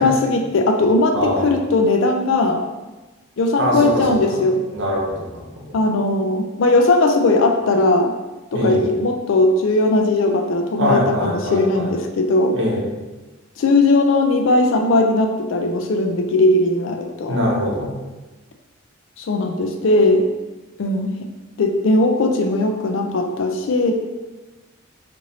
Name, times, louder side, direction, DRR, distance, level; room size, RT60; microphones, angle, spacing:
voice 1, 0.0-2.6 3.4-4.6 5.7-8.1 8.5-12.6 13.6-17.4 19.2-20.3 20.8-21.1 21.6-23.9, left 2 dB, 70° left, 5 dB, 0.4 m, -18 dB
voice 2, 1.1-1.6 3.6-4.2 4.7-5.6 8.5-8.9 10.8-11.9 12.5-12.8 17.3-18.0, equal, 60° right, -3 dB, 0.9 m, -22 dB
3.1 x 2.6 x 4.0 m, 1.2 s
head